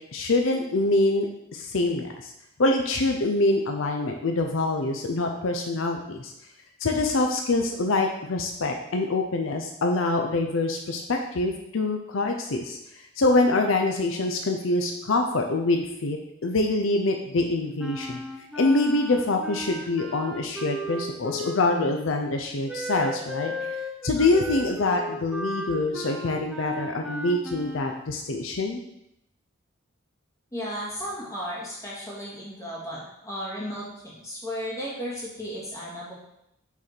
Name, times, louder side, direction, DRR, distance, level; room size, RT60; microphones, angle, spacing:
voice 1, 0.1-2.3 2.6-6.3 6.8-12.8 13.2-18.2 18.6-23.8 24.0-28.8, left 2 dB, 80° left, 3 dB, 0.6 m, -25 dB
Wind instrument woodwind instrument, 17.8-21.9 22.7-28.1, equal, ahead, 0.6 m, -35 dB
voice 2, 30.5-36.1, equal, 15° left, -6 dB, 1.8 m, -34 dB
5.8 x 4.1 x 4.4 m, 0.81 s
head